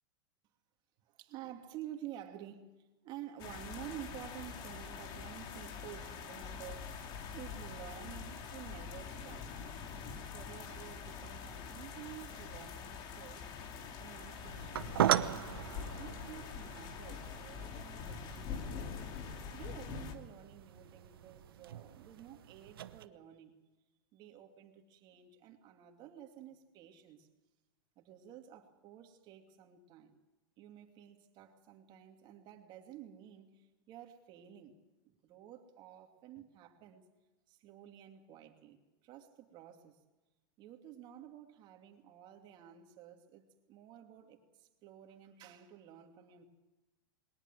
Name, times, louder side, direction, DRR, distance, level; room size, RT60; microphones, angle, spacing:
voice 1, 1.0-6.9 7.3-9.6 10.3-13.5 14.0-18.8 19.5-23.5 24.1-27.3 28.0-30.2 30.6-37.0 37.5-38.8 39.0-40.0 40.6-46.4, right 11 dB, 40° right, 4 dB, 2.7 m, -51 dB
sound 1, 3.4-20.1, left 6 dB, 40° left, 2.6 m, -45 dB
sound 2, 14.1-23.1, right 11 dB, 85° right, 1.0 m, -39 dB
21.5 x 19.0 x 7.6 m, 1.1 s
supercardioid pair, 135°, 12 cm